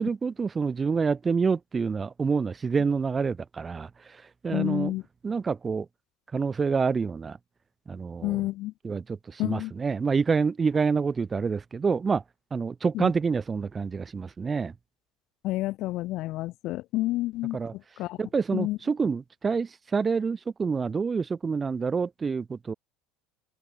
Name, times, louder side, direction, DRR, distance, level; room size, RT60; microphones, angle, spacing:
voice 1, 0.0-4.9 5.2-5.9 6.3-7.4 7.9-8.4 8.8-12.2 12.5-14.7 17.5-17.7 18.2-22.7, right 5 dB, 25° right, 1.2 m, -27 dB
voice 2, 4.5-5.0 8.2-8.7 9.4-9.7 12.9-13.1 15.4-18.2 18.5-18.8, left 17 dB, 60° left, 1.8 m, -29 dB
open air
hypercardioid pair, 80°, 0 cm